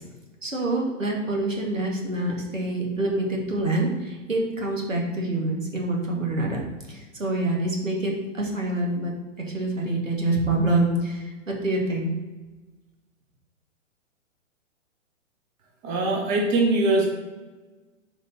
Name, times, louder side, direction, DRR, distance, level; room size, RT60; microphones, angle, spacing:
voice 1, 0.4-6.6 6.9-12.1, right 2 dB, 80° right, -1 dB, 2.1 m, -26 dB
voice 2, 15.8-17.0, right 2 dB, 25° right, -1 dB, 1.5 m, -22 dB
6.6 x 5.1 x 4.3 m, 1.2 s
figure-of-eight pair, 115°, 39 cm